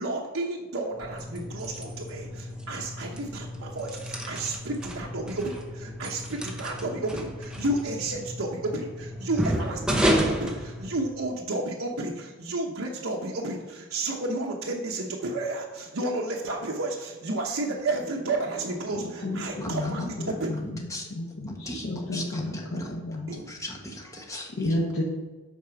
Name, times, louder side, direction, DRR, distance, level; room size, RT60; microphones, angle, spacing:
voice 1, 0.0-20.5 23.3-23.5, right 2 dB, 75° right, -1 dB, 0.9 m, -32 dB
sound 1, 0.9-11.4, equal, 5° right, 0.8 m, -32 dB
voice 2, 18.9-19.9 20.2-20.7 21.1-23.3 24.6-25.0, left 1 dB, 85° left, -2 dB, 1.1 m, -31 dB
voice 3, 19.6-20.3 20.6-21.1 21.5-23.0 23.3-24.8, left 1 dB, 15° left, 0 dB, 1.4 m, -39 dB
8.2 x 4.9 x 5.8 m, 1.3 s
head